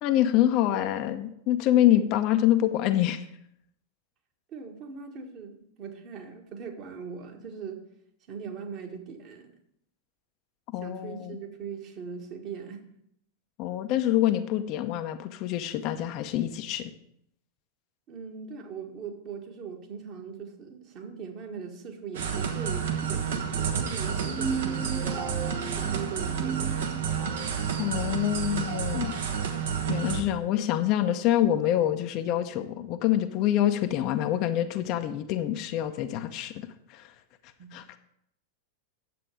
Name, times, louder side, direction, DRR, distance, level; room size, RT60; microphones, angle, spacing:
voice 1, 0.0-3.2 10.7-11.4 13.6-16.9 27.8-29.1 29.9-36.5 36.9-37.1 37.7-37.8, left 12 dB, 40° left, 8 dB, 0.7 m, -26 dB
voice 2, 4.5-7.8 8.3-9.5 10.8-12.8 18.1-25.3 25.7-26.8 37.6-37.7, right 6 dB, 40° right, 2 dB, 1.6 m, -40 dB
sound 1, 22.1-30.2, right 7 dB, 60° right, 1.1 m, -30 dB
sound 2, 24.1-27.5, right 5 dB, 15° right, 0.5 m, -36 dB
9.4 x 7.7 x 4.9 m, 0.73 s
figure-of-eight pair, 90°, 0 cm